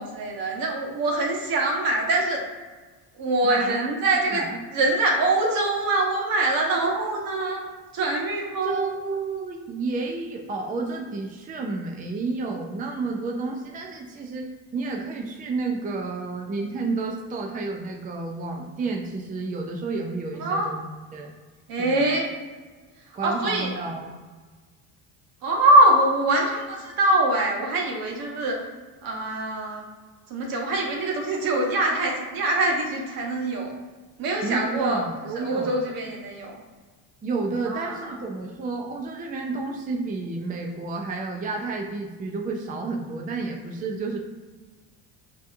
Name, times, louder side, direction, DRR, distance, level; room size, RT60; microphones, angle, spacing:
voice 1, 0.0-2.4 3.2-4.4 4.7-7.6 7.9-8.9 20.4-20.7 21.7-22.3 23.2-23.7 25.4-28.6 29.0-29.9 30.3-33.7 34.2-35.0 35.3-36.5 37.6-38.1, right 2 dB, 60° right, 0 dB, 1.2 m, -23 dB
voice 2, 3.4-3.9 4.3-4.6 8.6-20.9 21.1-21.3 21.8-22.1 23.1-24.1 34.4-35.9 37.2-44.2, right 3 dB, 20° right, 1 dB, 0.5 m, -31 dB
6.0 x 2.8 x 2.6 m, 1.4 s
cardioid pair, 110°, 39 cm